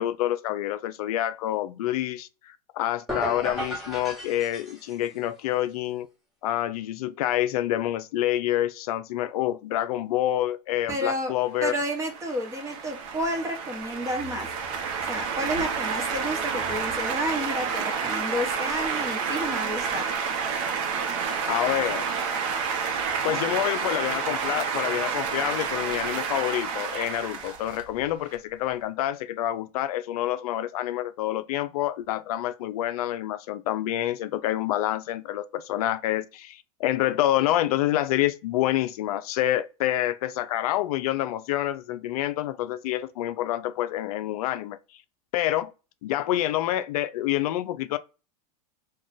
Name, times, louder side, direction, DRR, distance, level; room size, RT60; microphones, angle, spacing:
voice 1, 0.0-6.1 6.4-11.7 21.5-22.1 23.2-44.8 45.3-45.7 46.0-48.0, left 13 dB, 70° left, 0.4 m, -27 dB
sound 1, 3.1-5.2, equal, ahead, 1.2 m, -34 dB
voice 2, 10.9-11.3 11.6-14.5 15.1-20.1, equal, 15° right, 1.0 m, -30 dB
sound 2, 11.7-28.3, right 6 dB, 55° right, 0.8 m, -29 dB
2.4 x 2.3 x 3.7 m
hypercardioid pair, 115°, 20 cm